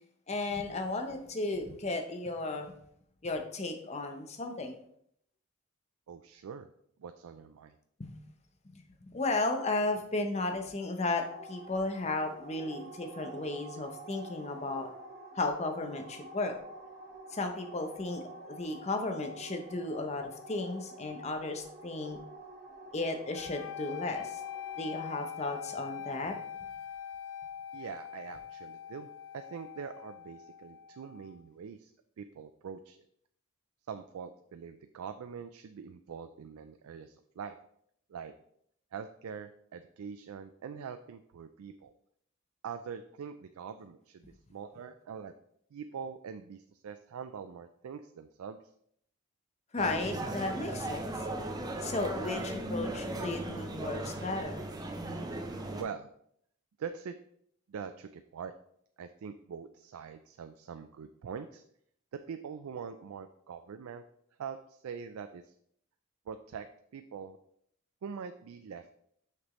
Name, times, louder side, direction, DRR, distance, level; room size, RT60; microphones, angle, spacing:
voice 1, 0.3-2.7 3.2-4.8 8.0-8.2 8.7-14.9 15.3-16.6 17.3-22.2 22.9-24.4 24.8-26.4 49.7-51.1 51.8-54.7, left 2 dB, 30° left, 5 dB, 0.7 m, -34 dB
voice 2, 6.1-6.7 7.0-7.7 27.7-29.1 29.3-31.9 32.2-33.0 33.9-37.6 38.1-38.3 38.9-41.9 42.6-45.3 45.7-48.6 55.7-56.1 56.8-57.2 57.7-58.5 59.0-61.6 62.3-64.0 64.4-65.5 66.3-66.7 66.9-67.4 68.0-68.9, right 6 dB, 90° right, 9 dB, 0.4 m, -43 dB
sound 1, 11.2-25.1, right 2 dB, 45° right, 1.3 m, -49 dB
sound 2, 23.3-31.4, left 9 dB, 60° left, 0.3 m, -43 dB
sound 3, 49.8-55.8, right 1 dB, 20° right, 0.6 m, -37 dB
6.1 x 5.9 x 3.0 m, 0.69 s
head